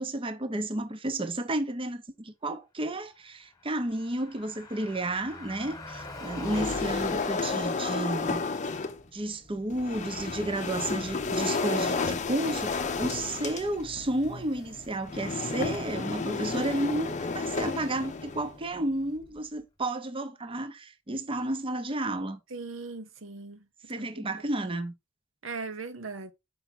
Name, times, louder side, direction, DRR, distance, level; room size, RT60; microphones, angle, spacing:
voice 1, 0.0-8.4 9.1-22.4 23.9-24.9, right 1 dB, 25° right, 0.7 m, -32 dB
Car passing by, 3.5-19.6, left 2 dB, 20° left, 1.3 m, -47 dB
sound 1, 6.4-9.0 9.7-18.6, left 4 dB, 40° left, 0.6 m, -32 dB
voice 2, 6.6-6.9 22.5-23.6 24.0-24.1 25.4-26.3, right 4 dB, 75° right, 0.9 m, -39 dB
5.6 x 5.6 x 4.1 m
head